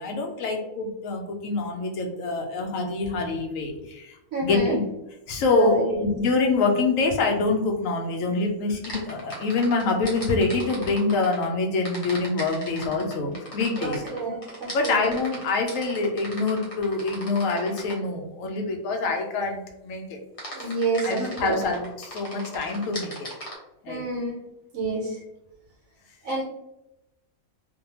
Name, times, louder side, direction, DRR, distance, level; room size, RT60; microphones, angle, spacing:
voice 1, 0.0-4.8 5.3-14.0 14.7-20.2 20.6-20.7 21.0-23.1 23.8-24.0, left 3 dB, 75° left, 2 dB, 1.0 m, -25 dB
voice 2, 4.3-4.8 5.4-5.9 13.8-15.1 20.5-21.6 23.9-24.4 24.7-25.2 26.2-26.4, right 3 dB, 85° right, -3 dB, 1.1 m, -28 dB
sound 1, 8.8-11.5 11.8-18.1 20.4-23.5, equal, 35° left, 0.6 m, -38 dB
2.6 x 2.2 x 2.8 m, 0.90 s
omnidirectional pair, 1.4 m